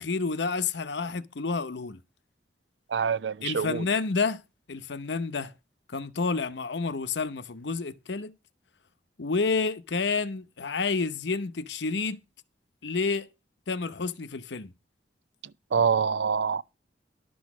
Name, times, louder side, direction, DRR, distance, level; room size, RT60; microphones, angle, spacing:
voice 1, 0.0-2.0 3.4-4.4 4.7-5.5 5.9-8.3 9.2-12.2 12.8-13.3 13.7-14.7, left 4 dB, 70° left, 0.8 m, -29 dB
voice 2, 2.9-3.8 15.7-16.6, right 6 dB, 70° right, 0.5 m, -25 dB
11.5 x 6.3 x 6.0 m
head